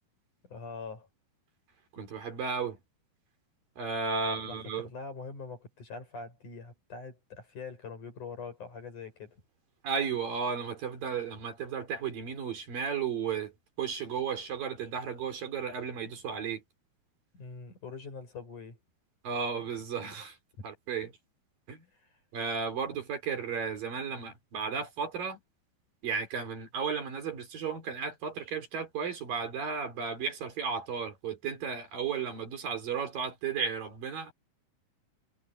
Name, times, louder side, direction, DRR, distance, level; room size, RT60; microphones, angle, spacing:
voice 1, 0.5-1.1 4.3-9.4 17.3-18.8 21.9-22.0, left 4 dB, 50° left, 7.9 m, -43 dB
voice 2, 1.9-2.8 3.8-4.9 9.8-13.5 13.8-16.6 19.2-20.4 20.6-21.1 21.7-21.8 22.3-25.4 26.0-34.3, right 6 dB, 60° right, 5.2 m, -34 dB
omnidirectional pair, 4.6 m